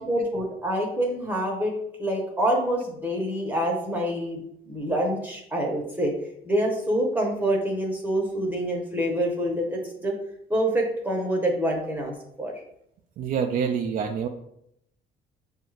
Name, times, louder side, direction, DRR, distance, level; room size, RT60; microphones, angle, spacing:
voice 1, 0.0-1.7 2.0-6.1 6.4-10.1 10.5-12.5, right 1 dB, 10° right, -1 dB, 0.8 m, -26 dB
voice 2, 13.2-14.3, right 7 dB, 55° right, 4 dB, 0.4 m, -26 dB
6.8 x 2.4 x 3.2 m, 0.76 s
cardioid pair, 110°, 17 cm